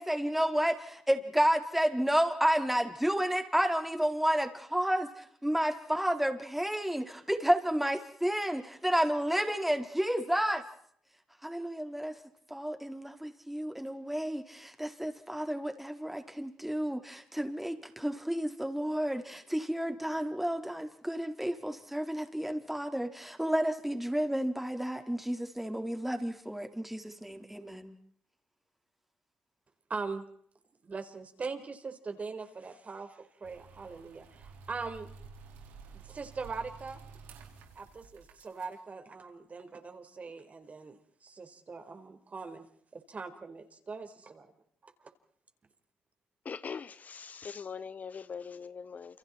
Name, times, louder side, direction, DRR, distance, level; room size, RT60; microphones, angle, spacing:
voice 1, 0.0-10.6 11.4-12.1 12.5-27.9, equal, 5° right, 4.6 m, -31 dB
voice 2, 29.9-30.2 30.8-35.1 35.9-37.0 37.7-42.6 42.9-44.5, right 4 dB, 40° right, 4.8 m, -41 dB
sound 1, 33.4-38.8, right 5 dB, 80° right, 5.1 m, -51 dB
voice 3, 46.4-49.2, left 6 dB, 45° left, 1.0 m, -42 dB
30.0 x 29.5 x 4.6 m
hypercardioid pair, 50°, 4 cm